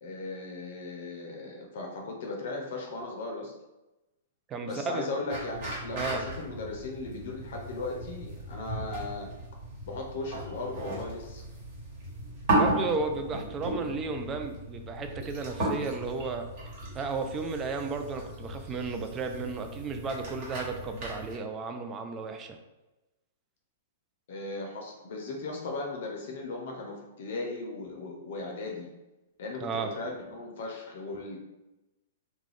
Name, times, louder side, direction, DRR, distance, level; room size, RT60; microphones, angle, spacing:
voice 1, 0.0-3.5 4.7-9.3 9.8-11.4 24.3-28.9 29.4-31.4, left 3 dB, 65° left, 0 dB, 0.5 m, -37 dB
voice 2, 4.5-5.1 5.9-6.2 12.5-16.4 16.9-22.6 29.6-29.9, right 4 dB, 25° right, 5 dB, 0.4 m, -34 dB
sound 1, 5.3-21.4, right 1 dB, 50° right, 1.3 m, -35 dB
2.3 x 2.1 x 3.3 m, 1.0 s
hypercardioid pair, 120°, 0 cm